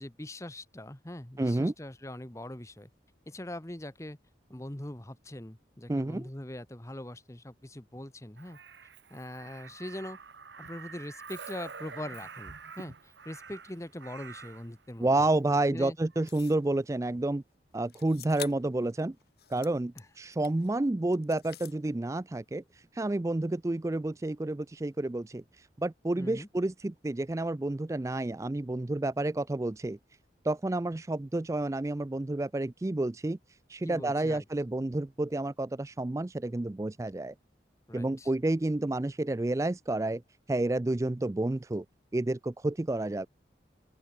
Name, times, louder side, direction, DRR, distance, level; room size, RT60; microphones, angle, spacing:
voice 1, 0.0-2.9 3.3-4.2 4.5-8.6 9.1-10.2 10.6-15.3 15.7-16.0 20.0-20.1 26.2-26.5 33.8-34.4 37.9-38.3, left 1 dB, 15° left, 1.1 m, -42 dB
voice 2, 1.4-1.7 5.9-6.3 15.0-17.4 17.7-19.2 19.5-30.0 30.4-33.4 33.7-37.3 37.9-40.2 40.5-41.8 42.1-43.3, right 2 dB, 15° right, 0.3 m, -30 dB
Crow, 8.4-14.7 16.1-16.3, right 5 dB, 80° right, 1.5 m, -47 dB
sound 1, 16.3-16.7 17.9-18.8 19.2-20.7 21.1-21.8, left 11 dB, 60° left, 2.0 m, -46 dB
open air
head